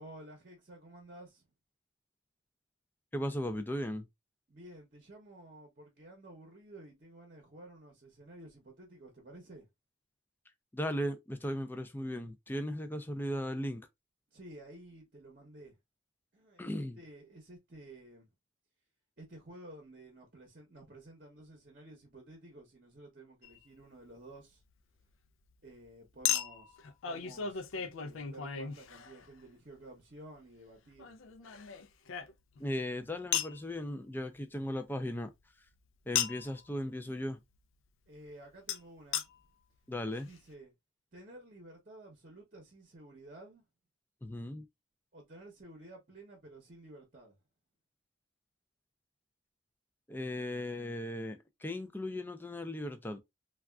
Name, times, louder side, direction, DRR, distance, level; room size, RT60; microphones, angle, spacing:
voice 1, 0.0-1.5 4.5-9.7 14.3-15.7 16.3-16.7 17.0-18.3 19.2-24.6 25.6-31.1 38.1-39.3 40.2-40.7 41.1-43.6 45.1-47.4, right 1 dB, 45° right, 0.8 m, -53 dB
voice 2, 3.1-4.1 10.7-13.9 16.6-17.0 32.6-35.3 36.1-37.4 39.9-40.3 44.2-44.7 50.1-53.2, left 1 dB, 10° left, 0.3 m, -37 dB
Chink clink, 23.4-23.6 26.2-29.4 31.0-32.7 33.3-33.6 36.1-36.5 38.7-38.8 39.1-39.2 39.9-40.0 40.2-40.3, left 9 dB, 80° left, 0.4 m, -35 dB
3.4 x 2.3 x 2.3 m
head